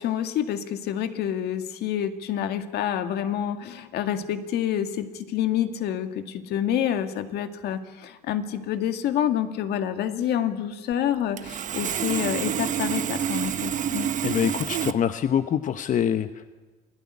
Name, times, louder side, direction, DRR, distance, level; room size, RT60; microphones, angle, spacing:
voice 1, 0.0-14.1, left 10 dB, 75° left, 8 dB, 2.1 m, -28 dB
Sawing, 10.9-11.0 11.4-14.9, right 9 dB, 50° right, 1.0 m, -28 dB
voice 2, 14.2-16.5, left 9 dB, 50° left, 10 dB, 1.0 m, -25 dB
27.5 x 17.5 x 9.8 m, 1.3 s
cardioid pair, 110°, 17 cm